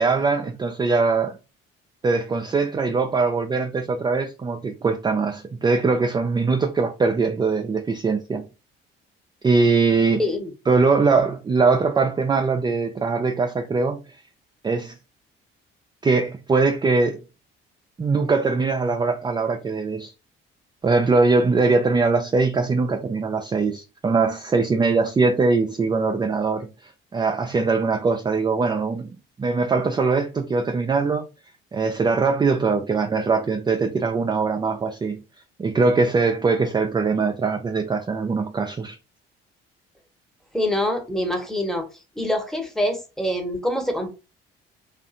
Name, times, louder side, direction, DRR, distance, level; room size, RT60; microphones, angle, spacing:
voice 1, 0.0-1.4 2.0-8.5 9.4-10.2 10.7-14.0 14.6-14.9 16.0-17.2 18.0-20.1 20.8-29.1 29.4-31.3 31.7-35.2 35.6-39.0, right 4 dB, 15° right, 0.3 m, -21 dB
voice 2, 10.2-10.5 40.5-41.9 42.2-44.1, left 1 dB, ahead, 0.9 m, -25 dB
2.5 x 2.4 x 2.5 m
hypercardioid pair, 50°, 29 cm